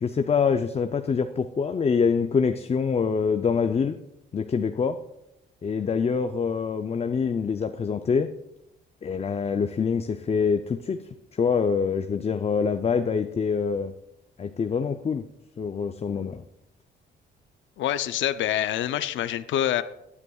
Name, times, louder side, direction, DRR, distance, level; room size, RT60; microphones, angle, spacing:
voice 1, 0.0-4.0 4.3-5.0 5.6-8.3 9.0-11.0 11.3-13.9 14.4-15.3 15.6-16.4, left 5 dB, 30° left, 8 dB, 0.5 m, -25 dB
voice 2, 17.8-19.8, left 11 dB, 75° left, 13 dB, 0.6 m, -26 dB
18.0 x 9.8 x 2.4 m, 0.85 s
cardioid pair, 90°, 20 cm